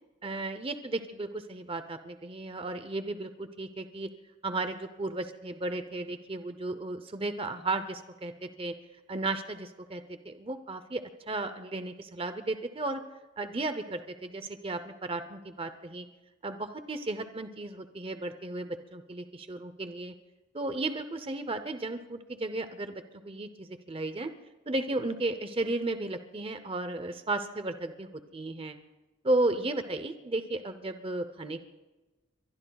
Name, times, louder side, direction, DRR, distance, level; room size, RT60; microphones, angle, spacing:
voice 1, 0.2-4.1 4.4-8.7 9.1-11.0 11.3-13.0 13.4-16.1 16.4-20.1 20.5-24.3 24.7-28.8 29.2-31.6, right 2 dB, 25° right, 10 dB, 0.6 m, -34 dB
23.5 x 23.0 x 2.3 m, 1.1 s
head